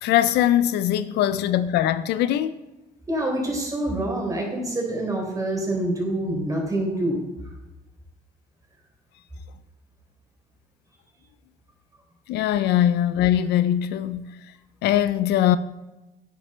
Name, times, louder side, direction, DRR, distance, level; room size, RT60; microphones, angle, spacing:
voice 1, 0.0-2.5 12.3-14.4 14.8-15.6, left 11 dB, 80° left, 0.5 m, -21 dB
voice 2, 3.1-7.2, right 1 dB, 20° right, 3.9 m, -26 dB
11.0 x 9.6 x 4.4 m
cardioid pair, 110°, 17 cm